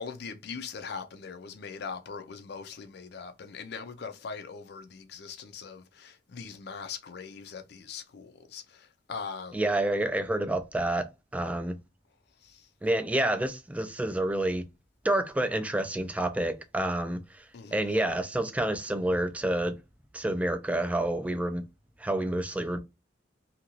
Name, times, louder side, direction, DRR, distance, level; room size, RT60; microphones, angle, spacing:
voice 1, 0.0-9.7 12.4-12.7 17.5-17.8, left 5 dB, 60° left, 0.5 m, -41 dB
voice 2, 9.5-11.1 11.3-11.8 12.8-14.6 15.0-17.4 17.7-19.8 20.1-21.6 22.0-22.8, right 1 dB, 10° right, 0.3 m, -28 dB
2.8 x 2.5 x 2.9 m
head